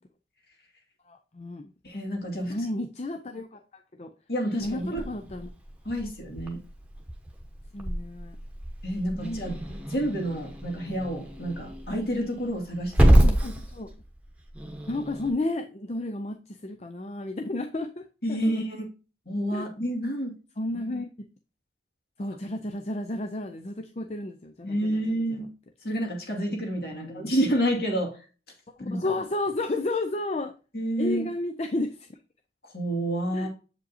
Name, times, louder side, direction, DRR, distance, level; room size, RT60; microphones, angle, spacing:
voice 1, 1.1-1.7 2.5-3.6 4.0-4.1 4.6-5.5 7.7-8.4 9.1-9.6 13.2-13.9 14.9-18.6 19.5-19.6 20.6-21.1 22.2-24.8 26.9-27.3 28.8-30.5 31.0-32.1 33.3-33.5, left 2 dB, 35° left, 6 dB, 0.5 m, -32 dB
voice 2, 1.8-2.5 4.3-5.0 5.8-6.6 8.8-9.6 9.9-13.3 18.2-18.8 19.3-20.3 24.6-25.5 25.8-28.2 28.8-29.0 30.7-31.3 32.7-33.5, right 1 dB, 55° left, 1 dB, 2.3 m, -29 dB
Growling / Hiss, 4.6-15.3, right 1 dB, 5° right, 1.1 m, -27 dB
7.8 x 5.1 x 2.7 m, 0.34 s
head